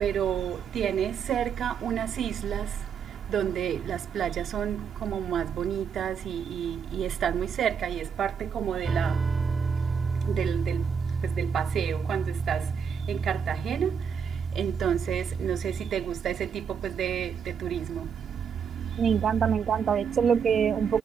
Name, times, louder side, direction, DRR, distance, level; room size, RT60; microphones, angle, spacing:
voice 1, 0.0-2.3 3.3-4.8 5.1-6.1 6.9-7.9 8.2-8.3 8.6-9.0 10.4-10.5 11.5-12.2 12.5-12.6 13.8-13.9 14.6-15.6 15.9-16.0 16.3-16.4 17.0-17.3, right 9 dB, 70° right, 2.2 m, -28 dB
sound 1, 8.8-15.9, right 4 dB, 30° right, 7.4 m, -30 dB
voice 2, 19.0-21.0, right 7 dB, 55° right, 1.9 m, -24 dB
cardioid pair, 135°, 0 cm